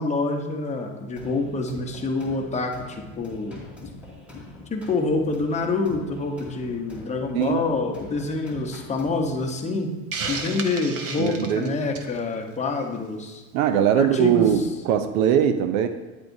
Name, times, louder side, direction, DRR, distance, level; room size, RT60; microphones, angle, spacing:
voice 1, 0.0-3.5 4.7-9.9 10.3-13.4 13.9-14.6, left 3 dB, 15° left, 1 dB, 0.9 m, -27 dB
sound 1, 1.2-9.5, left 2 dB, 5° right, 2.3 m, -43 dB
Hiss, 10.1-12.2, right 4 dB, 35° right, 0.8 m, -32 dB
voice 2, 11.2-11.7 13.5-15.9, right 9 dB, 70° right, 10 dB, 0.7 m, -21 dB
9.3 x 7.6 x 2.7 m, 1.2 s
supercardioid pair, 120°, 44 cm